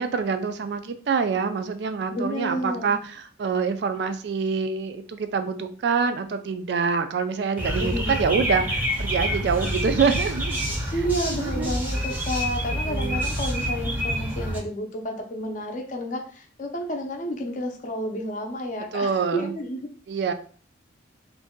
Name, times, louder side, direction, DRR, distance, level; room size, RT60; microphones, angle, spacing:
voice 1, 0.0-10.6 11.3-11.7 12.7-13.2 18.9-19.5 20.1-20.3, right 5 dB, 60° right, 9 dB, 0.3 m, -26 dB
voice 2, 2.1-2.9 7.8-8.3 10.7-19.9, equal, 40° left, 2 dB, 0.5 m, -31 dB
sound 1, 7.6-14.6, equal, 10° right, 0.5 m, -27 dB
2.6 x 2.2 x 3.6 m, 0.43 s
head